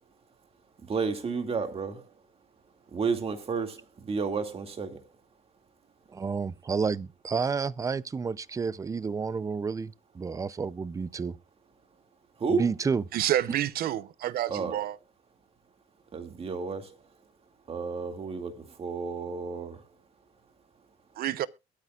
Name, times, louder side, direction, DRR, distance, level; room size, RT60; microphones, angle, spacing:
voice 1, 0.9-2.0 2.9-5.0 12.4-12.6 14.5-14.8 16.1-17.0 17.7-19.8, right 5 dB, 35° right, 2.3 m, -31 dB
voice 2, 6.1-11.4 12.5-13.0, right 5 dB, 20° right, 0.5 m, -30 dB
voice 3, 13.1-15.0 21.2-21.5, right 13 dB, 65° right, 0.8 m, -28 dB
22.0 x 9.3 x 2.4 m
cardioid pair, 110°, 17 cm